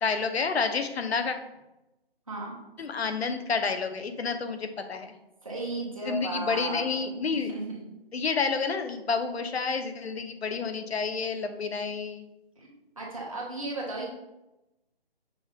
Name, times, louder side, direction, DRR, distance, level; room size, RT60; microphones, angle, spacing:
voice 1, 0.0-1.4 2.8-5.1 6.0-7.5 8.1-12.3, left 5 dB, 85° left, 7 dB, 0.7 m, -29 dB
voice 2, 5.4-7.8 12.6-14.1, right 2 dB, 35° right, -3 dB, 0.9 m, -35 dB
6.0 x 2.5 x 3.4 m, 0.94 s
hypercardioid pair, 180°, 31 cm